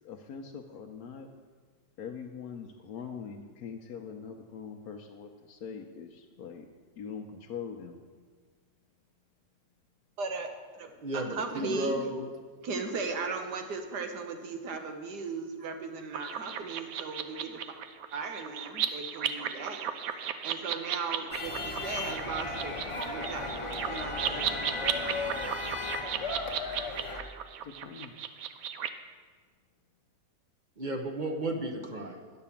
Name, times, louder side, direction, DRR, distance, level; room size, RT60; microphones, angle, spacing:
voice 1, 0.0-1.3 2.0-6.6 7.0-8.0 27.6-28.2, left 6 dB, 75° left, 1 dB, 1.2 m, -42 dB
voice 2, 10.2-10.5 10.7-12.1 12.6-17.8 18.1-19.9 20.4-22.8 23.1-23.5 23.8-24.7 25.0-25.3, right 4 dB, 90° right, 5 dB, 1.7 m, -37 dB
voice 3, 11.0-12.2 16.2-16.4 26.4-26.5 30.8-32.2, right 1 dB, 35° right, 4 dB, 0.9 m, -34 dB
sound 1, 16.1-28.9, right 9 dB, 70° right, 1.0 m, -35 dB
sound 2, 21.3-27.2, left 3 dB, 25° left, 0.8 m, -35 dB
10.0 x 6.8 x 7.1 m, 1.5 s
omnidirectional pair, 1.7 m